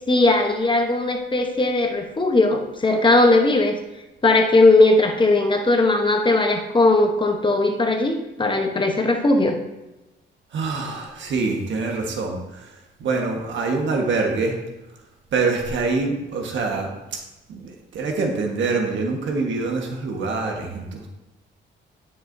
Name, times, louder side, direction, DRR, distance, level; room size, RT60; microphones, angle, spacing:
voice 1, 0.1-3.8 4.2-9.6, left 2 dB, 25° left, 4 dB, 1.0 m, -18 dB
voice 2, 10.5-12.7 13.0-14.6 15.3-17.2 17.5-21.1, right 3 dB, 70° right, 2 dB, 1.4 m, -25 dB
10.0 x 6.0 x 2.7 m, 1.0 s
cardioid pair, 90°, 20 cm